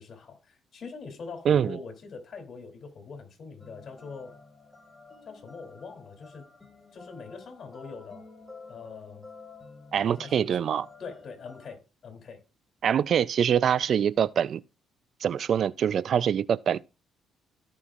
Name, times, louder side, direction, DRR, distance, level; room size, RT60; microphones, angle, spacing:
voice 1, 0.0-4.4 5.3-6.5 6.9-8.3 8.7-9.2 10.0-10.5 11.0-12.4, left 5 dB, 55° left, 2.9 m, -43 dB
voice 2, 1.5-1.8 9.9-10.9 12.8-14.6 15.2-16.8, right 8 dB, 60° right, 0.3 m, -24 dB
sound 1, 3.6-11.7, left 4 dB, 10° left, 4.2 m, -50 dB
17.0 x 5.7 x 2.4 m
supercardioid pair, 65°, 0 cm